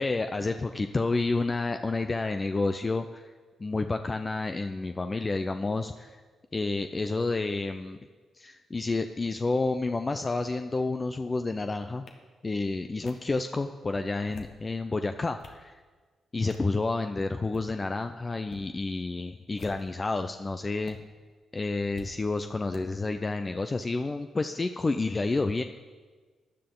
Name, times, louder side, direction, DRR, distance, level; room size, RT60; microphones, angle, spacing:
voice 1, 0.0-3.3 3.6-6.2 6.5-8.0 8.3-12.1 12.4-15.7 16.3-21.0 21.5-25.6, left 3 dB, 35° left, 7 dB, 0.6 m, -30 dB
sound 1, 12.1-12.2 13.1-13.2 14.1-14.6 15.1-15.6 16.5-16.7 17.4-17.7 18.4-18.6 19.5-20.0 20.8-20.9 21.9-22.1 22.7-22.8, left 4 dB, 60° left, 1.6 m, -47 dB
15.0 x 10.5 x 3.9 m, 1.4 s
supercardioid pair, 50°, 0 cm